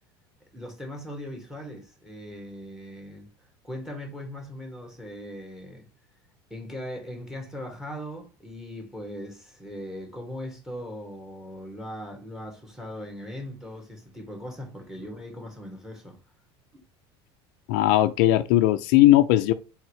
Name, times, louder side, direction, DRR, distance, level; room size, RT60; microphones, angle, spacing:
voice 1, 0.5-3.3 3.6-5.9 6.5-16.2, equal, 5° right, 1.9 m, -39 dB
voice 2, 17.7-19.5, left 14 dB, 70° left, 0.4 m, -18 dB
4.6 x 3.6 x 3.1 m
supercardioid pair, 100°, 13 cm